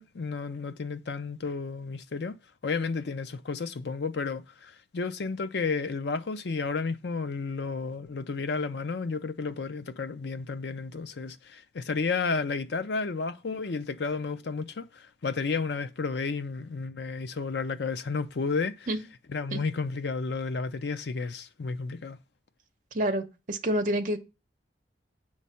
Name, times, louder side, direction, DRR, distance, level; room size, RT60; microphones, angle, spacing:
voice 1, 0.0-2.4 2.6-18.9 19.3-22.2, left 4 dB, 65° left, 0.5 m, -32 dB
voice 2, 22.9-24.2, right 1 dB, 45° right, 0.8 m, -28 dB
8.2 x 3.2 x 5.6 m
head